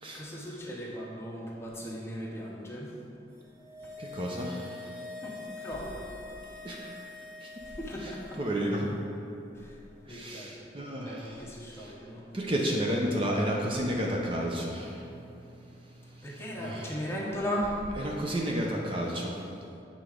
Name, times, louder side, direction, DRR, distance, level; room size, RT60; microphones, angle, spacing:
voice 1, 0.1-2.9 3.8-3.9 5.2-6.1 7.6-8.4 9.5-9.8 10.1-10.7 11.0-12.2 16.2-17.9, equal, 15° left, -4 dB, 1.0 m, -37 dB
sound 1, 3.4-8.9 9.1-9.2, left 3 dB, 15° right, 1.2 m, -45 dB
voice 2, 4.0-4.9 6.6-7.1 7.4-7.5 8.0-8.1 8.4-8.9 10.1-11.5 11.7-11.9 12.3-15.1 16.1-17.0 18.0-19.4, equal, 30° right, -1 dB, 0.6 m, -32 dB
7.8 x 3.7 x 5.0 m, 2.7 s
head